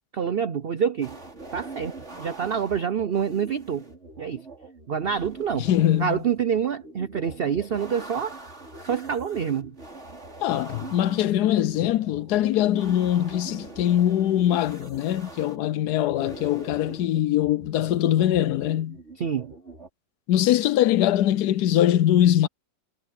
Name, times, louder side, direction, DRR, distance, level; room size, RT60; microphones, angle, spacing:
voice 1, 0.1-1.2 1.5-3.9 4.2-4.5 4.9-5.7 6.0-8.3 8.8-9.7 19.2-19.5, right 7 dB, 80° right, 0.5 m, -27 dB
sound 1, 1.0-19.9, right 2 dB, 40° right, 4.3 m, -43 dB
voice 2, 5.6-6.2 10.4-19.0 20.3-22.5, left 12 dB, 70° left, 1.1 m, -22 dB
omnidirectional pair, 1.9 m